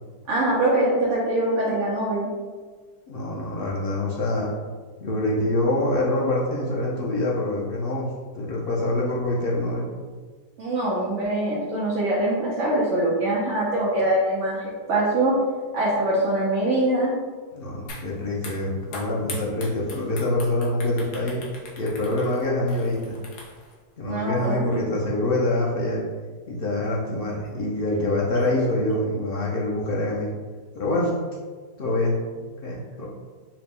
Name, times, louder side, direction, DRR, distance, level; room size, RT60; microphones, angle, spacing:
voice 1, 0.3-2.3 10.6-14.6 14.9-15.4 15.7-17.1 24.1-24.8, right 1 dB, 55° right, -6 dB, 0.9 m, -23 dB
voice 2, 3.1-4.5 5.0-9.9 17.5-21.4 21.8-23.2 24.0-26.0 26.5-30.3 30.7-31.1 31.8-33.1, left 1 dB, 85° left, -4 dB, 0.5 m, -25 dB
sound 1, 17.9-18.1 18.4-23.7, left 3 dB, 70° left, 1.3 m, -40 dB
4.9 x 2.1 x 3.4 m, 1.4 s
omnidirectional pair, 1.8 m